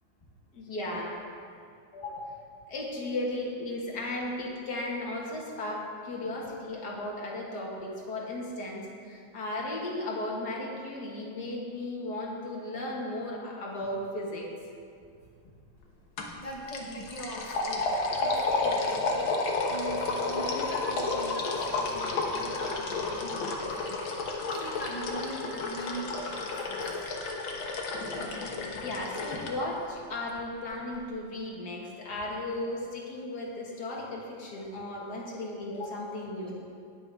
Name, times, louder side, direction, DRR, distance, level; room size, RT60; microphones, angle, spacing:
voice 1, 0.5-1.2 1.9-2.4 2.7-14.5 28.6-36.5, left 1 dB, 50° left, -3 dB, 2.2 m, -35 dB
sound 1, 16.2-16.4 16.7-29.5, left 3 dB, 70° left, 1.9 m, -31 dB
voice 2, 16.4-19.3 19.7-24.0 24.6-26.8, equal, 30° left, -4 dB, 0.6 m, -40 dB
19.0 x 6.9 x 3.5 m, 2.4 s
omnidirectional pair, 2.3 m